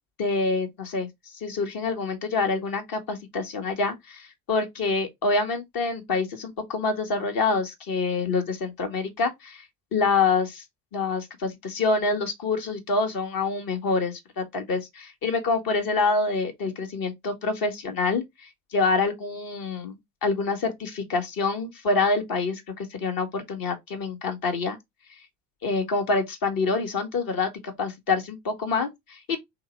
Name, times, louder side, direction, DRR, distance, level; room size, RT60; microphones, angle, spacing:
voice 1, 0.2-1.1 1.4-9.6 9.9-10.6 10.9-18.2 18.7-19.9 20.2-24.8 25.6-29.4, left 4 dB, 45° left, 1.6 m, -26 dB
3.6 x 3.1 x 4.4 m
hypercardioid pair, 75°, 49 cm